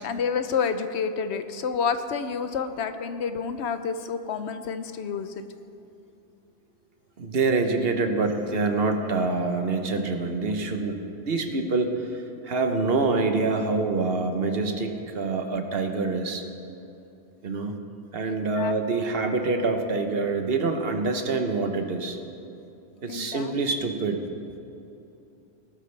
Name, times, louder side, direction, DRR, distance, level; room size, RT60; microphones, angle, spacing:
voice 1, 0.0-5.3 18.2-18.7 23.1-23.9, left 6 dB, 80° left, 10 dB, 1.0 m, -29 dB
voice 2, 7.2-11.0 11.2-16.4 17.4-17.7 18.1-22.2 23.0-24.2, right 3 dB, 60° right, 6 dB, 1.2 m, -26 dB
19.0 x 12.5 x 3.3 m, 2.9 s
omnidirectional pair, 1.1 m